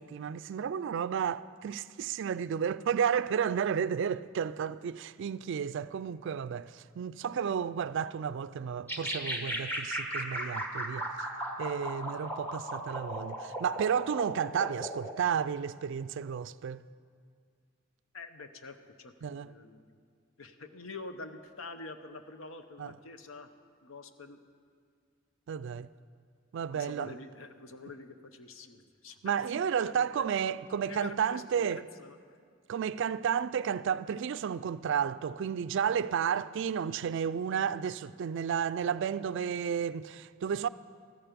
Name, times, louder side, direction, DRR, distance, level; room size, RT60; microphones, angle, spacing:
voice 1, 0.0-11.1 11.6-16.8 19.2-19.5 22.8-23.0 25.5-25.9 26.5-27.2 29.2-31.9 32.7-40.7, right 7 dB, 60° right, 0.3 m, -32 dB
sound 1, 8.9-15.2, right 1 dB, 10° left, 1.3 m, -36 dB
voice 2, 18.1-19.9 20.4-23.5 23.8-24.4 26.7-30.2 30.8-32.4, left 3 dB, 80° left, 0.8 m, -47 dB
14.0 x 13.5 x 5.2 m
head